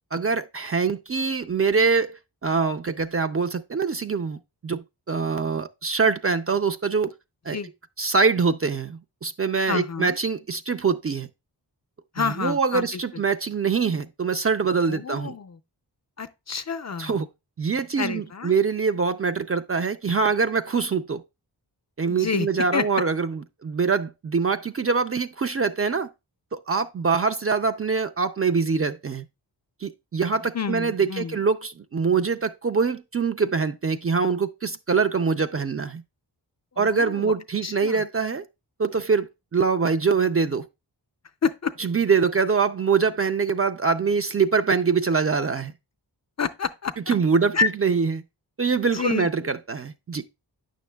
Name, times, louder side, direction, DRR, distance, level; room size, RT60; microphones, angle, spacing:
voice 1, 0.1-4.4 4.6-7.1 7.5-7.6 8.0-11.3 12.4-15.4 17.0-17.3 17.6-21.2 22.0-26.1 26.5-29.2 29.8-36.0 36.8-38.4 38.8-40.6 41.8-45.7 47.1-48.2 48.6-50.2, right 5 dB, 35° right, 0.4 m, -24 dB
voice 2, 9.7-10.2 12.1-12.9 14.9-15.6 16.2-17.1 18.0-18.5 22.1-22.5 22.7-23.0 30.5-31.4 36.7-37.3 37.6-38.0 41.4-41.7 46.4-47.1 47.5-47.7 48.9-49.3, left 5 dB, 40° left, 0.4 m, -28 dB
9.0 x 6.3 x 2.2 m
wide cardioid pair, 65°, 44 cm